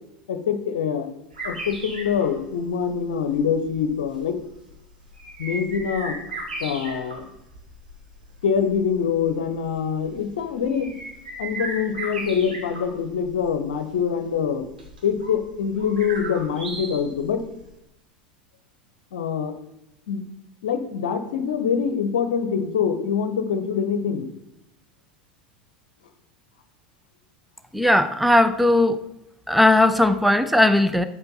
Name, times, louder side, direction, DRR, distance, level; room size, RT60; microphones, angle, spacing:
voice 1, 0.3-1.1 1.4-4.4 5.4-6.2 6.6-7.2 8.4-10.9 11.4-14.7 15.0-17.4 19.1-19.6 20.1-20.2 20.6-24.3, left 7 dB, 65° left, 10 dB, 0.8 m, -24 dB
sound 1, 1.3-17.7, right 2 dB, 75° right, 2.0 m, -37 dB
voice 2, 27.7-29.0 29.5-31.0, left 1 dB, ahead, 10 dB, 0.5 m, -18 dB
7.8 x 7.4 x 4.0 m, 0.85 s
figure-of-eight pair, 80°, 5 cm